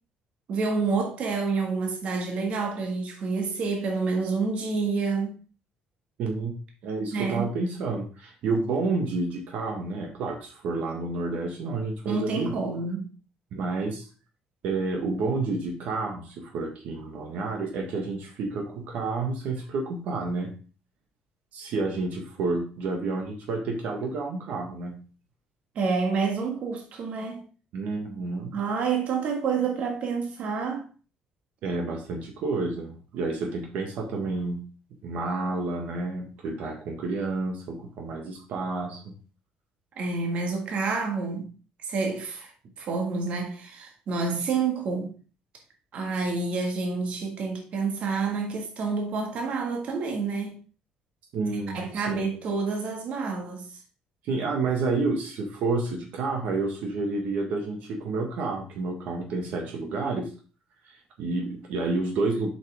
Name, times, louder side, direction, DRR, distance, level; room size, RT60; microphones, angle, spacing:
voice 1, 0.5-5.3 7.1-7.5 12.0-13.1 25.7-27.4 28.5-30.8 39.9-41.5 41.8-42.5 42.8-45.1 45.9-50.6 51.7-53.6, right 4 dB, 50° right, 1.7 m, -28 dB
voice 2, 6.2-6.5 6.8-12.6 13.5-14.1 14.6-20.5 21.5-25.0 27.7-28.5 31.6-34.6 35.0-39.1 51.3-52.3 54.2-60.3 60.8-62.5, right 3 dB, 70° right, 1.6 m, -30 dB
7.5 x 5.6 x 3.5 m
cardioid pair, 155°, 3 cm